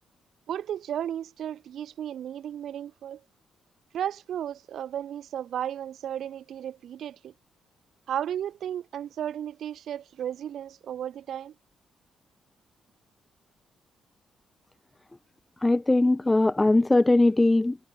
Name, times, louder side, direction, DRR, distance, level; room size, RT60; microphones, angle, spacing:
voice 1, 0.5-3.2 3.9-7.3 8.1-11.5, right 10 dB, 60° right, 1.5 m, -34 dB
voice 2, 15.6-17.8, left 2 dB, 10° left, 0.4 m, -20 dB
cardioid pair, 170°, 0 cm